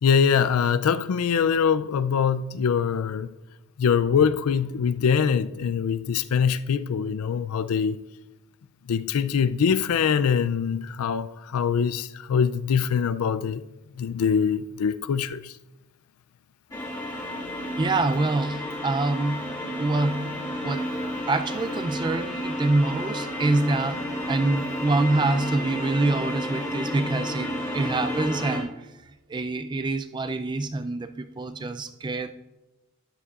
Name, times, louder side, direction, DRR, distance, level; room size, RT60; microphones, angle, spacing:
voice 1, 0.0-3.3 3.8-8.0 8.9-13.6 14.0-15.5, left 7 dB, 80° left, 0.4 m, -23 dB
sound 1, 16.7-28.6, equal, 15° left, 1.9 m, -31 dB
voice 2, 17.8-20.4 20.6-20.9 21.3-28.9 29.3-32.3, right 2 dB, 20° right, 0.4 m, -26 dB
12.5 x 9.7 x 2.4 m
head